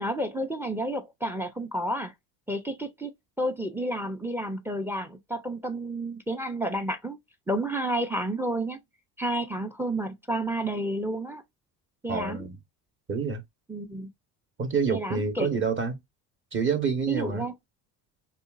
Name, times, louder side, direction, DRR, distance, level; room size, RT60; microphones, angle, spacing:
voice 1, 0.0-2.1 2.5-7.2 7.5-8.8 9.2-11.4 12.0-12.5 13.7-14.1 14.9-15.6 17.1-17.5, right 1 dB, 5° right, 0.4 m, -31 dB
voice 2, 12.1-12.6 13.1-13.4 14.6-16.0 16.5-17.4, right 5 dB, 25° right, 0.9 m, -27 dB
2.8 x 2.3 x 2.3 m
hypercardioid pair, 70°, 48 cm